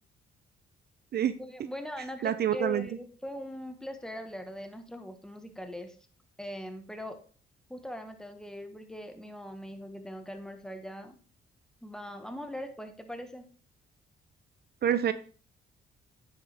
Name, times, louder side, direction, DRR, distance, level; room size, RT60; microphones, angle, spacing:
voice 1, 1.4-6.0 6.4-7.2 7.7-11.2 11.8-13.5, equal, 5° left, 6 dB, 1.4 m, -41 dB
voice 2, 2.2-2.9 14.8-15.1, right 10 dB, 55° right, 13 dB, 0.6 m, -26 dB
9.5 x 6.5 x 3.5 m, 0.40 s
cardioid pair, 90°, 20 cm